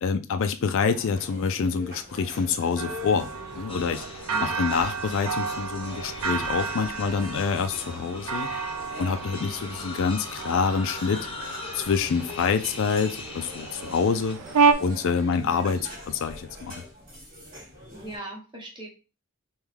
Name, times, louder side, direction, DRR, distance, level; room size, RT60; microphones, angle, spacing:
voice 1, 0.0-4.0 4.4-8.5 9.0-11.3 11.7-14.4 14.8-16.8, left 5 dB, 60° left, 9 dB, 0.4 m, -26 dB
sound 1, 0.8-18.2, left 1 dB, 40° right, 1.5 m, -45 dB
sound 2, 2.8-14.7, right 5 dB, 80° right, 0.5 m, -30 dB
sound 3, 3.7-14.3, left 3 dB, 25° left, 0.6 m, -41 dB
voice 2, 4.3-4.6 15.3-15.6 17.9-18.9, right 1 dB, 20° right, -1 dB, 1.1 m, -40 dB
3.5 x 3.0 x 3.4 m, 0.33 s
head